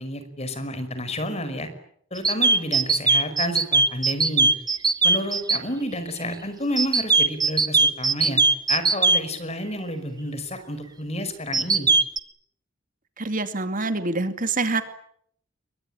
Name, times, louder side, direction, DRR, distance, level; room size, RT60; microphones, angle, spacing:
voice 1, 0.0-1.7 2.1-4.5 5.0-8.4 8.7-11.9, left 1 dB, 35° left, 10 dB, 5.4 m, -30 dB
sound 1, 2.2-5.6 6.8-9.2 11.5-12.2, right 3 dB, 20° right, 1.4 m, -19 dB
voice 2, 13.2-14.8, right 3 dB, 45° right, 9 dB, 2.4 m, -26 dB
29.0 x 23.0 x 8.9 m, 0.67 s
head